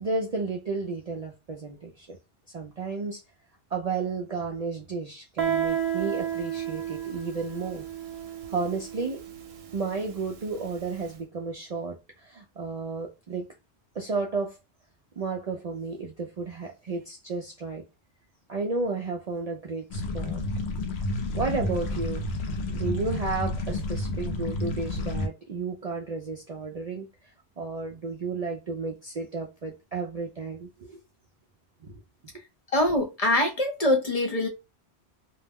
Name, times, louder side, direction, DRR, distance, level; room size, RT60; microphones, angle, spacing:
voice 1, 0.0-2.2 2.5-3.2 3.7-7.9 8.5-9.2 9.7-13.5 13.9-14.6 15.2-17.8 18.5-20.4 21.3-22.2 22.7-27.1 27.6-31.0 31.8-32.0, right 4 dB, 50° right, 0.4 m, -32 dB
Guitar, 5.4-10.8, right 9 dB, 70° right, 0.9 m, -32 dB
sound 1, 19.9-25.3, left 2 dB, 75° left, 0.9 m, -30 dB
voice 2, 32.7-34.5, left 1 dB, 40° left, 0.7 m, -24 dB
2.3 x 2.0 x 3.4 m
omnidirectional pair, 1.1 m